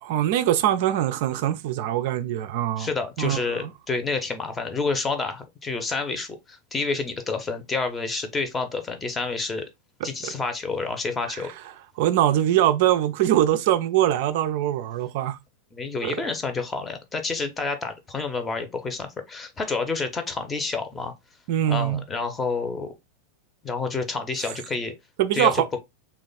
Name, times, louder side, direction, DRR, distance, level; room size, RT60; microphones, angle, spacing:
voice 1, 0.0-2.9 3.2-3.7 10.2-10.3 12.0-15.4 16.0-16.1 21.5-22.0 25.2-25.7, right 12 dB, 50° right, 0.4 m, -22 dB
voice 2, 2.8-9.6 10.0-11.5 15.7-21.1 21.7-22.9 23.6-24.9 25.3-25.8, left 4 dB, 15° left, 0.7 m, -29 dB
3.2 x 2.3 x 3.8 m
figure-of-eight pair, 90°, 0 cm